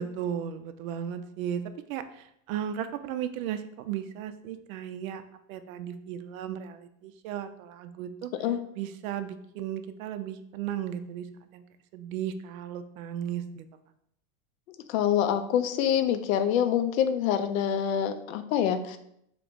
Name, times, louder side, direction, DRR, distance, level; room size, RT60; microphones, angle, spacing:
voice 1, 0.0-1.6 1.9-5.2 5.5-8.3 8.8-11.3 11.5-11.6 11.9-13.7, right 9 dB, 75° right, 10 dB, 0.5 m, -35 dB
voice 2, 14.9-19.0, left 9 dB, 75° left, 9 dB, 0.6 m, -26 dB
3.8 x 2.9 x 3.5 m, 0.74 s
supercardioid pair, 160°, 42 cm